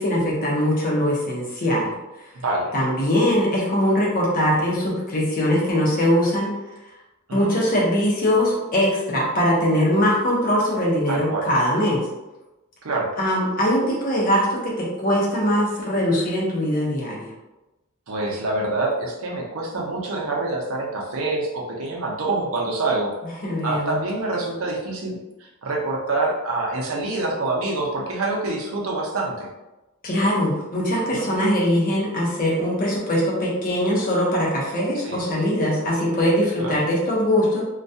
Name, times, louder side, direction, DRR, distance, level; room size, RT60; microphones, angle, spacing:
voice 1, 0.0-1.9 2.7-6.5 7.3-12.0 13.2-17.3 23.4-23.9 30.0-37.6, equal, 40° left, -4 dB, 0.7 m, -21 dB
voice 2, 2.3-2.7 7.3-7.5 11.1-11.5 12.8-13.1 18.1-23.1 23.6-29.5 31.1-31.3 34.9-35.2 36.6-36.8, right 2 dB, 65° right, -2 dB, 0.6 m, -26 dB
2.3 x 2.2 x 2.6 m, 1.0 s
head